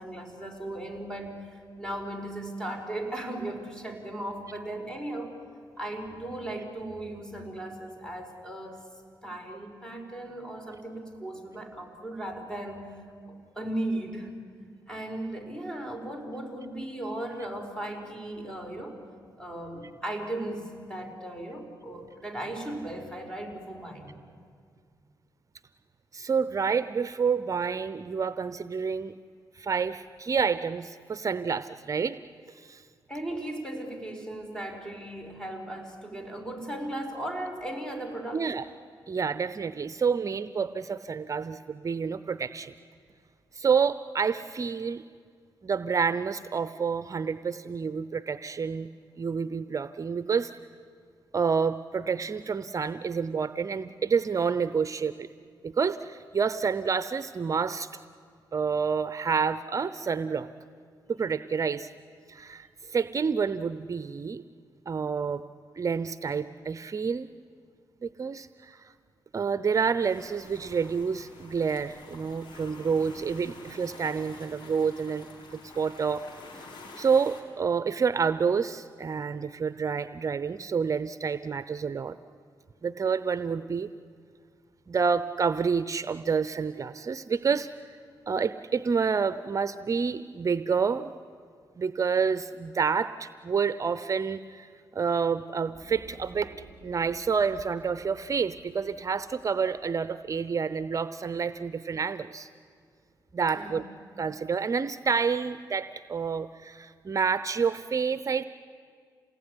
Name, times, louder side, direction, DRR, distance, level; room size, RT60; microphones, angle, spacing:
voice 1, 0.0-5.4 5.8-8.9 9.2-12.9 13.3-14.4 14.9-19.0 19.4-24.2 33.1-38.5 103.5-103.9, right 1 dB, 10° left, 4 dB, 4.9 m, -37 dB
voice 2, 26.1-29.1 29.6-32.2 32.6-32.8 38.3-38.6 39.1-42.7 43.5-45.0 45.6-48.9 49.2-50.5 51.3-55.3 55.6-57.9 58.5-60.5 61.1-61.9 62.3-64.4 64.9-65.4 65.8-67.3 68.0-68.9 69.3-76.2 77.0-82.2 82.8-83.9 84.9-87.7 88.3-91.1 91.8-96.5 96.8-102.5 103.3-103.8 104.2-108.4, right 6 dB, 40° right, 13 dB, 0.7 m, -28 dB
sound 1, 70.0-77.4, left 3 dB, 75° left, 4.6 m, -48 dB
sound 2, 95.7-103.1, right 1 dB, 25° left, 7.3 m, -55 dB
28.0 x 19.0 x 9.9 m, 2.1 s
cardioid pair, 70°, 8 cm